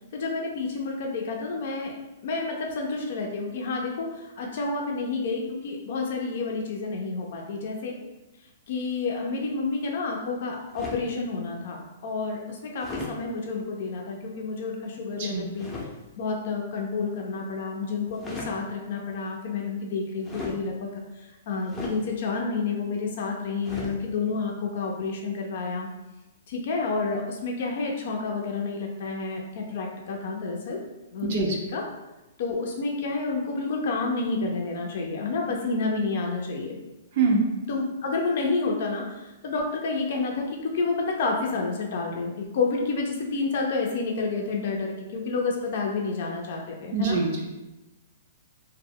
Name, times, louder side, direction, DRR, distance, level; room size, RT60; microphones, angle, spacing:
voice 1, 0.1-1.9 2.2-7.9 8.7-15.7 16.2-25.9 26.5-30.8 31.1-31.8 32.4-36.8 37.7-47.2, left 3 dB, 60° left, 0 dB, 0.4 m, -29 dB
sound 1, 10.7-11.1 12.8-13.2 15.6-15.9 18.1-18.6 20.2-20.6 21.7-22.0 23.6-24.0, left 3 dB, 15° left, 0.5 m, -36 dB
voice 2, 15.1-15.5 31.2-31.6 37.1-37.5 46.9-47.5, right 4 dB, 55° right, 0 dB, 0.5 m, -24 dB
2.0 x 2.0 x 3.6 m, 1.0 s
hypercardioid pair, 125°, 0 cm